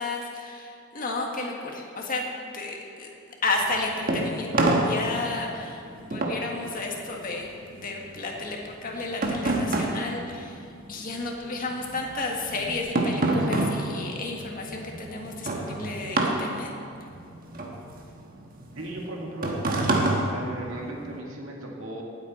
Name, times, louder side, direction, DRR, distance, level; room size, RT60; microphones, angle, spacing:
voice 1, 0.0-2.2 2.5-3.1 3.4-16.7, left 3 dB, 40° left, 0 dB, 1.7 m, -32 dB
sound 1, 3.6-11.2 11.5-21.2, right 2 dB, 45° right, 1.4 m, -28 dB
voice 2, 18.7-19.6 20.3-22.0, right 1 dB, 80° right, -1 dB, 2.2 m, -36 dB
18.5 x 8.4 x 4.4 m, 2.4 s
head